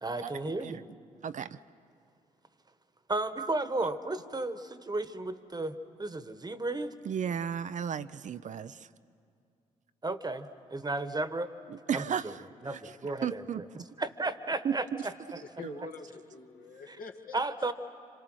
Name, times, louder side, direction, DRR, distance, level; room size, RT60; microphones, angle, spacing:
voice 1, 0.0-0.8 3.1-6.9 10.0-11.5 11.9-12.3 12.6-13.7 14.0-15.4 16.9-17.0 17.3-17.7, right 2 dB, 25° right, 11 dB, 1.3 m, -34 dB
voice 2, 1.2-1.6 3.4-3.5 3.8-3.9 7.0-8.9 11.7-13.9 14.6-15.0 15.6-15.9, right 8 dB, 50° right, 12 dB, 0.6 m, -35 dB
voice 3, 15.4-17.7, left 5 dB, 65° left, 2 dB, 1.9 m, -46 dB
27.0 x 26.5 x 6.3 m, 2.3 s
hypercardioid pair, 50°, 16 cm